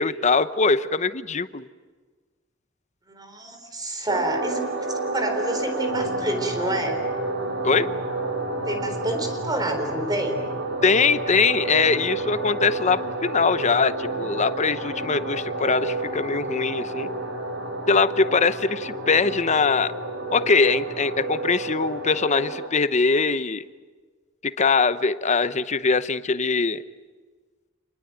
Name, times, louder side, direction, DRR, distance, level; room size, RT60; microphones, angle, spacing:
voice 1, 0.0-1.7 7.6-7.9 10.8-17.1 17.9-19.9 20.3-23.6 24.4-26.8, left 4 dB, 35° left, 14 dB, 0.8 m, -22 dB
voice 2, 3.1-4.6 5.0-7.0 8.6-10.4, right 1 dB, 20° right, 6 dB, 3.9 m, -28 dB
sound 1, 4.1-22.7, right 2 dB, 60° right, 3.6 m, -30 dB
Drum, 5.9-22.1, left 1 dB, 40° right, 4.5 m, -43 dB
28.0 x 20.5 x 9.2 m, 1.5 s
head